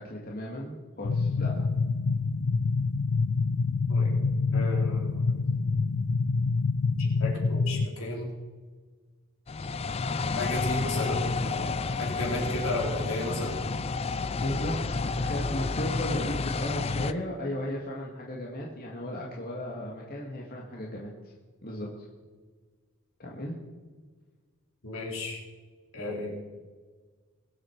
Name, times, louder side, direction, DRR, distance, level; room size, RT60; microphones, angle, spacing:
voice 1, 0.0-1.7 14.4-21.1 21.6-21.9 23.2-23.5, left 1 dB, 40° left, -3 dB, 1.9 m, -35 dB
sound 1, 1.0-7.9, left 4 dB, 90° left, 0.5 m, -26 dB
voice 2, 4.5-5.3 7.0-8.3 10.3-13.6 24.8-25.4 25.9-26.3, left 1 dB, 70° left, -3 dB, 4.6 m, -33 dB
sound 2, 9.5-17.1, left 4 dB, 25° left, 0.4 m, -30 dB
22.5 x 7.8 x 4.7 m, 1.5 s
head